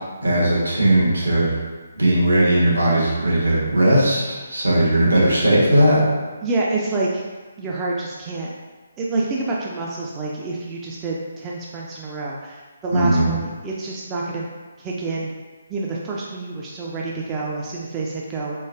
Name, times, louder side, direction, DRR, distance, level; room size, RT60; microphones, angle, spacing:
voice 1, 0.2-1.5 1.9-4.2 4.5-6.0 12.9-13.3, right 1 dB, 75° right, -7 dB, 1.5 m, -17 dB
voice 2, 6.4-7.2 7.6-8.5 9.0-14.5 14.8-15.3 15.7-18.6, right 3 dB, 15° right, -4 dB, 0.3 m, -27 dB
3.7 x 3.4 x 2.6 m, 1.3 s
figure-of-eight pair, 140°, 0 cm